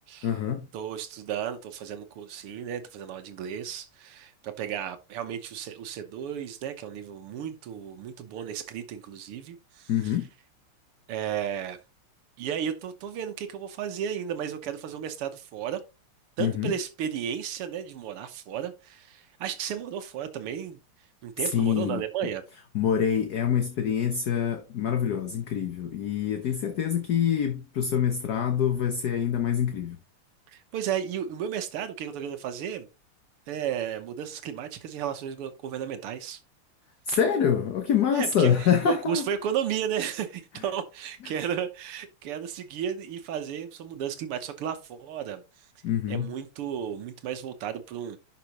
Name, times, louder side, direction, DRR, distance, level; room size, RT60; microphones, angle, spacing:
voice 1, 0.2-0.7 9.9-10.3 16.4-16.7 21.5-22.0 22.7-30.0 37.1-39.3 45.8-46.3, left 8 dB, 55° left, 1.3 m, -25 dB
voice 2, 0.7-10.1 11.1-11.8 12.4-15.8 16.4-20.8 21.2-22.4 30.5-32.9 33.5-36.4 38.1-45.4 46.1-48.2, right 9 dB, 85° right, 1.9 m, -33 dB
11.5 x 6.0 x 2.9 m
omnidirectional pair, 2.4 m